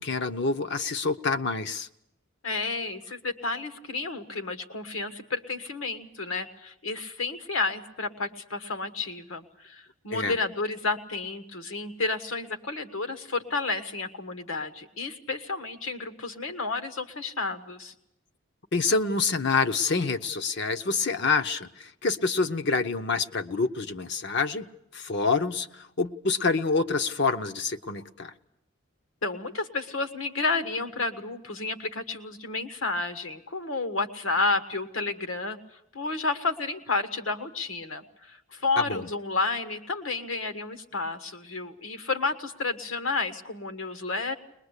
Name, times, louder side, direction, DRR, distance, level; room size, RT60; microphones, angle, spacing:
voice 1, 0.0-1.9 10.1-10.3 18.7-24.7 24.9-28.3 38.8-39.1, left 4 dB, 55° left, 8 dB, 0.8 m, -27 dB
voice 2, 2.4-17.9 29.2-35.6 35.9-44.3, left 3 dB, 75° left, 8 dB, 1.5 m, -31 dB
21.5 x 21.5 x 8.2 m, 0.80 s
head